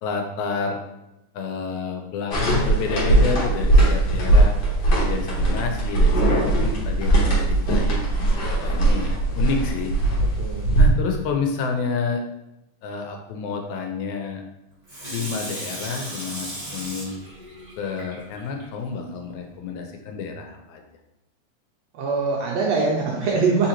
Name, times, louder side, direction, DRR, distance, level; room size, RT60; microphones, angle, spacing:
voice 1, 0.0-0.8 1.3-4.5 4.9-8.1 8.6-9.9 10.8-12.2 12.8-14.4 15.1-17.1 17.8-20.8, left 5 dB, 80° left, 3 dB, 1.9 m, -29 dB
sound 1, 2.3-10.9, right 2 dB, 60° left, 1.1 m, -19 dB
voice 2, 10.4-10.7 21.9-23.7, right 4 dB, 80° right, -1 dB, 1.5 m, -23 dB
Water tap faucet / Sink (filling or washing), 14.9-18.6 19.1-19.2, right 1 dB, 40° right, 0.5 m, -36 dB
4.2 x 3.8 x 2.9 m, 0.91 s
omnidirectional pair, 3.4 m